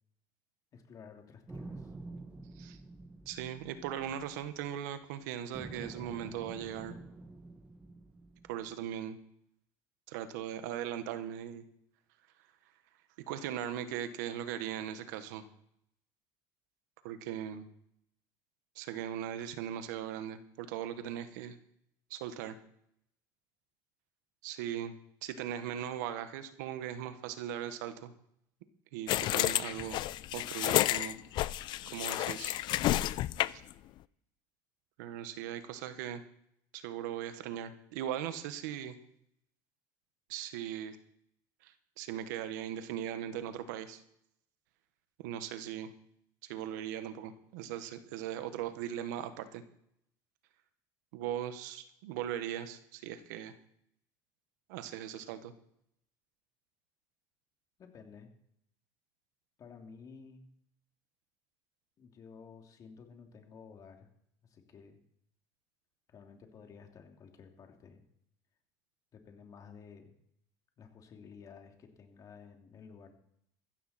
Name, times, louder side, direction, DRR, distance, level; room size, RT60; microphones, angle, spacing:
voice 1, 0.7-1.9 57.8-58.3 59.6-60.5 62.0-64.1 64.4-65.0 66.1-68.0 69.1-70.1 70.8-73.1, left 6 dB, 40° left, 3 dB, 2.9 m, -53 dB
sound 1, 1.5-5.1 5.5-8.9, right 2 dB, 10° right, 1.2 m, -48 dB
voice 2, 3.2-7.0 8.5-9.2 10.1-11.6 13.3-15.4 17.0-17.7 18.7-21.5 22.1-22.5 24.4-24.9 25.2-28.1 28.9-30.0 30.3-31.2 31.9-32.6 35.0-36.2 36.7-39.0 40.3-41.0 41.6-44.0 45.2-45.9 46.4-49.6 51.1-53.5 54.7-55.5, right 10 dB, 90° right, 10 dB, 1.5 m, -39 dB
sound 2, 29.1-33.7, left 15 dB, 55° left, 0.5 m, -31 dB
15.0 x 13.5 x 4.4 m, 0.72 s
supercardioid pair, 120°, 9 cm